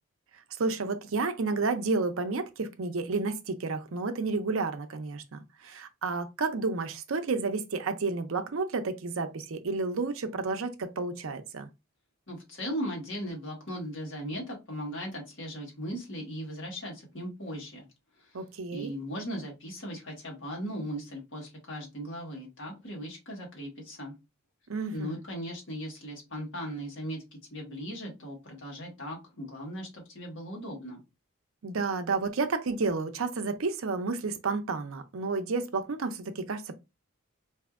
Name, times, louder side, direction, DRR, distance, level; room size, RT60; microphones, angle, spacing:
voice 1, 0.3-11.7 18.3-18.9 24.7-25.2 31.6-36.7, right 4 dB, 70° right, 0.6 m, -31 dB
voice 2, 12.3-17.8 18.7-24.1 24.9-31.0, equal, 55° left, 1.5 m, -38 dB
4.3 x 2.7 x 2.4 m
head